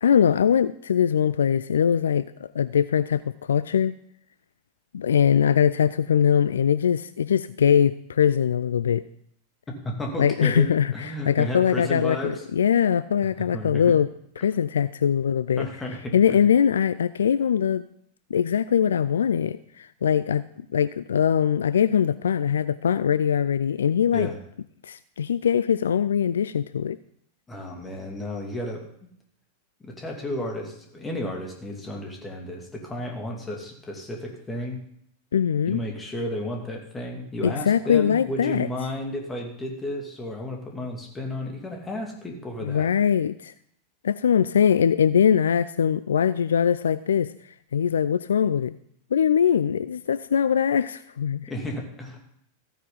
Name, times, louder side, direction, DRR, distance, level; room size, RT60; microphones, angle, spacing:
voice 1, 0.0-3.9 4.9-9.0 10.2-14.1 14.4-15.7 16.1-17.8 18.3-20.4 20.7-24.3 24.8-27.0 35.3-35.8 37.4-38.7 42.6-43.5 44.0-47.3 47.7-48.8 49.1-51.5, left 8 dB, 65° left, 15 dB, 0.3 m, -22 dB
voice 2, 9.8-12.4 13.5-13.9 15.6-16.4 24.1-24.4 27.5-28.9 29.8-34.8 35.7-42.9 51.5-52.2, left 1 dB, 15° left, 1 dB, 2.6 m, -33 dB
14.5 x 9.2 x 4.0 m, 0.68 s
figure-of-eight pair, 90°, 0 cm